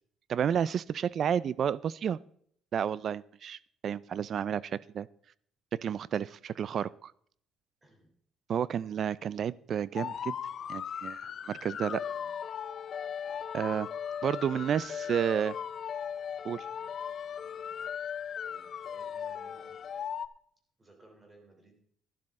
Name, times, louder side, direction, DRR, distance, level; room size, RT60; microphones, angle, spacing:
voice 1, 0.3-2.2 2.7-5.1 5.7-7.1 8.5-10.4 10.7-12.0 13.5-13.9 14.2-15.5 16.4-16.6, right 8 dB, 50° right, 21 dB, 0.4 m, -31 dB
voice 2, 7.8-8.1 11.6-12.3 18.4-19.8 20.8-21.8, right 3 dB, 20° right, 3 dB, 3.2 m, -59 dB
sound 1, 9.9-20.3, left 8 dB, 50° left, 0.5 m, -38 dB
12.0 x 12.0 x 3.7 m, 0.63 s
cardioid pair, 115°, 0 cm